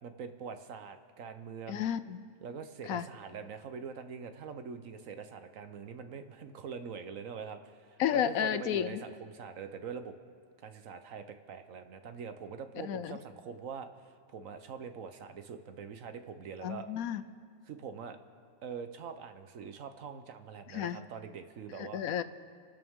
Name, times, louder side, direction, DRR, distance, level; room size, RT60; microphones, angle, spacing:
voice 1, 0.0-1.9 2.4-10.1 10.6-16.9 17.7-18.2 18.6-22.0, right 6 dB, 65° right, 9 dB, 1.2 m, -44 dB
voice 2, 1.7-2.2 2.9-3.1 8.0-9.0 12.8-13.2 16.6-17.2 20.7-21.0 21.8-22.2, left 9 dB, 80° left, 13 dB, 1.1 m, -32 dB
29.5 x 12.0 x 3.7 m, 2.1 s
omnidirectional pair, 1.5 m